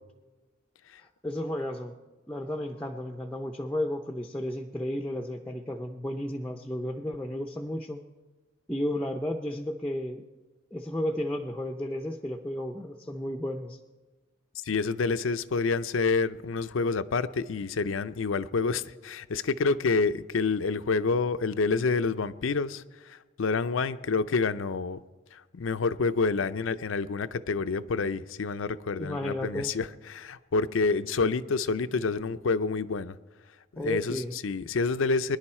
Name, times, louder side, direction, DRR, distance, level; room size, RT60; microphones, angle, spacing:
voice 1, 1.0-1.9 2.3-8.0 8.7-10.2 10.7-13.8 29.0-29.7 33.8-34.4, left 1 dB, 5° left, 3 dB, 0.5 m, -33 dB
voice 2, 14.6-25.0 25.3-33.2 33.7-35.4, left 4 dB, 85° left, 12 dB, 0.5 m, -28 dB
22.5 x 10.5 x 4.3 m, 1.3 s
head